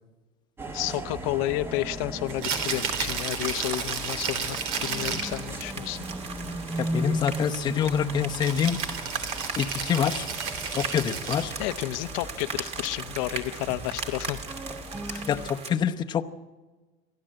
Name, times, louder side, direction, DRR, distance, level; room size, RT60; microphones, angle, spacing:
sound 1, 0.6-15.5, right 1 dB, 10° right, 1.1 m, -37 dB
voice 1, 0.7-6.0 11.6-14.4 15.1-15.2, left 16 dB, 70° left, 10 dB, 0.8 m, -31 dB
Rattle (instrument), 2.3-5.5 8.4-11.6, right 6 dB, 75° right, 3.5 m, -32 dB
sound 2, 2.5-15.7, right 5 dB, 35° right, 2.4 m, -38 dB
voice 2, 6.8-8.8 9.6-10.3 10.7-11.5 15.3-16.2, left 8 dB, 25° left, 5 dB, 0.9 m, -26 dB
29.0 x 12.0 x 7.7 m, 1.2 s
cardioid pair, 155°, 18 cm